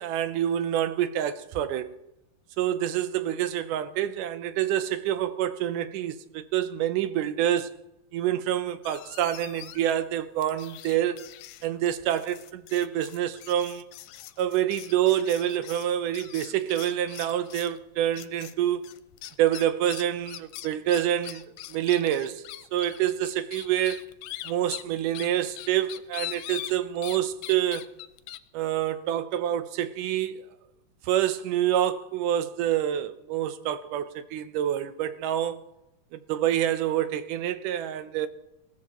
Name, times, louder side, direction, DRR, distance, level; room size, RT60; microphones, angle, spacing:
voice 1, 0.0-1.9 2.6-7.7 8.1-11.2 11.6-13.8 14.4-18.8 19.4-22.5 22.7-24.1 24.5-27.8 28.5-30.5 31.0-35.6 36.1-38.3, right 11 dB, 75° right, 2.2 m, -27 dB
sound 1, 8.8-10.0 10.4-17.8 18.1-18.5 18.8-27.2 27.4-28.4, left 14 dB, 85° left, 2.4 m, -42 dB
21.0 x 16.5 x 3.0 m
omnidirectional pair, 4.0 m